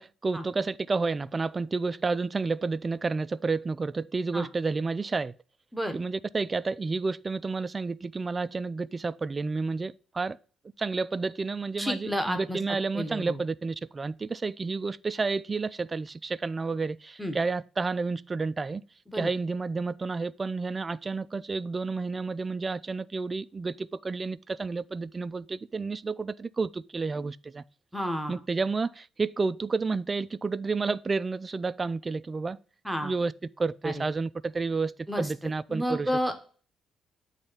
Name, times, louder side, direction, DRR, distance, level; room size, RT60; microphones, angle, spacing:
voice 1, 0.0-5.3 5.9-10.4 10.8-18.8 19.1-27.6 28.3-32.6 33.0-33.3 33.6-36.1, right 4 dB, 25° right, 0.3 m, -30 dB
voice 2, 11.8-12.6 12.9-13.4 17.2-17.3 19.1-19.3 27.9-28.4 32.8-33.1 33.8-34.0 35.1-35.3 35.7-36.4, equal, ahead, 1.0 m, -30 dB
8.7 x 3.3 x 5.6 m
cardioid pair, 120°, 0 cm